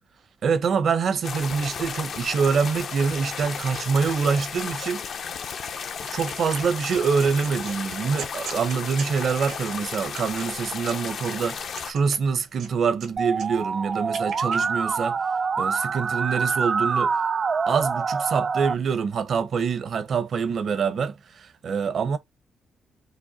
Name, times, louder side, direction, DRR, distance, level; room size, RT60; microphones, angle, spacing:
voice 1, 0.4-5.0 6.1-15.2 15.6-17.2 17.7-22.2, right 6 dB, 60° right, 0.7 m, -25 dB
sound 1, 1.2-11.9, left 6 dB, 60° left, 0.6 m, -34 dB
sound 2, 6.1-6.6 6.9-11.2 11.6-13.1 13.3-14.6, right 6 dB, 85° right, 1.1 m, -40 dB
Musical instrument, 13.2-18.7, right 5 dB, 45° right, 0.3 m, -26 dB
5.1 x 2.1 x 2.8 m
cardioid pair, 80°, 0 cm